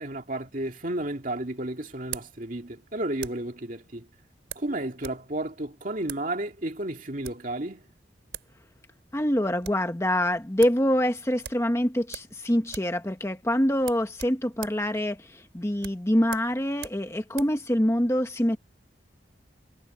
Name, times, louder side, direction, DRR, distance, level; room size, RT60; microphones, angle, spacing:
voice 1, 0.0-4.0 4.6-7.8, right 1 dB, 45° right, 2.5 m, -32 dB
sound 1, 0.6-3.6 4.5-5.2 5.5-5.6 6.0-6.3 7.0-7.5 8.0-8.1 8.3-8.6 8.9-9.0 9.3-9.9 10.2-10.3 10.6-10.8 11.4-12.4 12.6-13.0 13.3-13.4 13.8-17.6, right 9 dB, 75° right, 3.8 m, -42 dB
voice 2, 9.1-18.6, equal, 15° left, 1.1 m, -25 dB
head